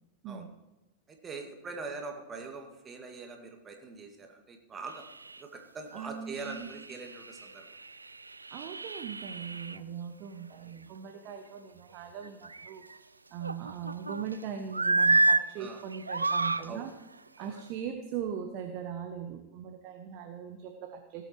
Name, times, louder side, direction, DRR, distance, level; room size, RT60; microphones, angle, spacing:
voice 1, 1.1-5.0 5.4-7.7 15.1-15.2 15.6-15.8 16.6-16.9 17.4-17.6, right 4 dB, 20° right, 3 dB, 2.2 m, -43 dB
sound 1, 5.0-5.4 5.9-6.1 6.4-9.8 12.2-13.0 13.4-14.4 14.7-15.4 15.9-16.6 17.4-17.6, right 3 dB, 80° right, 0.4 m, -30 dB
voice 2, 5.9-6.7 8.5-13.0 13.3-16.9 17.4-21.2, right 8 dB, 40° right, 5 dB, 1.1 m, -40 dB
17.5 x 8.3 x 4.6 m, 1.0 s
figure-of-eight pair, 90°, 0 cm